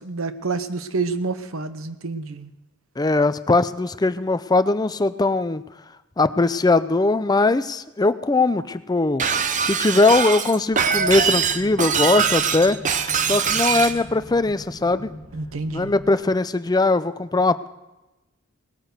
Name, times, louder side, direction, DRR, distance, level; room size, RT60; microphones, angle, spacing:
voice 1, 0.0-2.5 15.3-15.9, right 4 dB, 70° right, 12 dB, 0.9 m, -28 dB
voice 2, 3.0-5.6 6.2-9.3 9.6-12.8 13.2-15.1 15.7-17.7, left 2 dB, 20° left, 12 dB, 0.5 m, -20 dB
Shatter, 9.2-14.0, right 6 dB, 35° right, 0.7 m, -22 dB
sound 1, 10.7-16.1, equal, 40° left, 2.3 m, -41 dB
18.5 x 9.2 x 6.6 m, 1.0 s
head